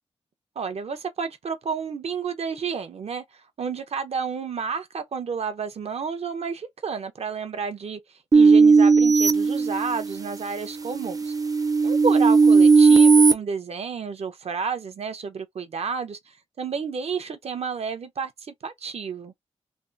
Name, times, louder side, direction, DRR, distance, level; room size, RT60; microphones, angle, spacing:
voice 1, 0.6-3.2 3.6-8.0 8.3-11.3 11.8-16.2 16.6-19.3, right 5 dB, 70° right, 0.7 m, -31 dB
sound 1, 8.3-10.3 10.8-13.3, right 4 dB, 35° right, 0.4 m, -16 dB
3.4 x 2.4 x 2.7 m
wide cardioid pair, 95°, 11 cm